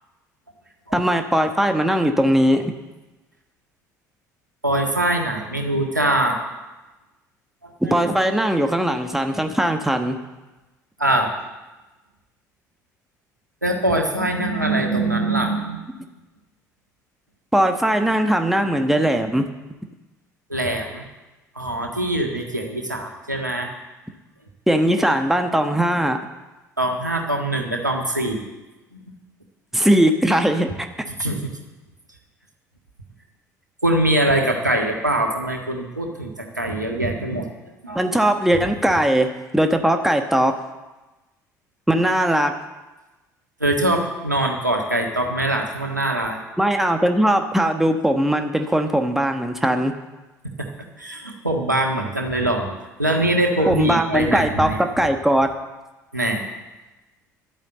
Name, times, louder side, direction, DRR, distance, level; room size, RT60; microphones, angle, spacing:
voice 1, 0.9-2.7 7.9-10.2 17.5-19.4 24.7-26.2 29.7-30.9 37.9-40.5 41.9-42.5 46.6-49.9 53.7-55.5, right 1 dB, 5° right, 5 dB, 1.2 m, -19 dB
voice 2, 4.6-6.4 7.6-7.9 11.0-11.3 13.6-15.8 20.5-21.0 21.5-23.7 26.8-28.4 28.9-29.0 31.2-31.5 33.8-37.5 37.8-38.0 38.5-38.6 43.6-46.6 51.0-52.7 53.0-54.8 56.1-56.4, right 1 dB, 90° right, 2 dB, 1.6 m, -23 dB
12.0 x 9.1 x 7.8 m, 1.1 s
figure-of-eight pair, 60°, 9 cm